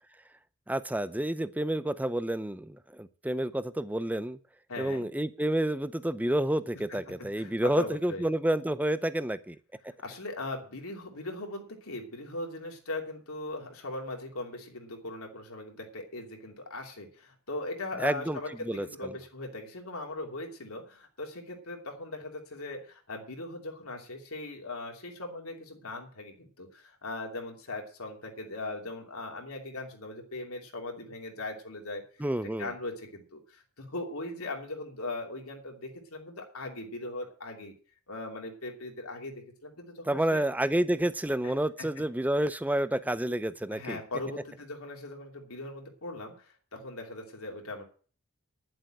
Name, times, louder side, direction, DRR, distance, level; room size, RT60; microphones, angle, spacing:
voice 1, 0.7-4.4 4.8-9.6 18.0-19.1 32.2-32.7 40.1-44.0, right 1 dB, 5° right, 15 dB, 0.5 m, -29 dB
voice 2, 4.7-5.1 6.9-7.0 7.4-8.2 9.9-32.0 32.4-37.7 38.1-40.4 41.4-41.9 43.7-47.8, left 2 dB, 75° left, 2 dB, 2.9 m, -39 dB
11.0 x 7.7 x 7.8 m, 0.40 s
head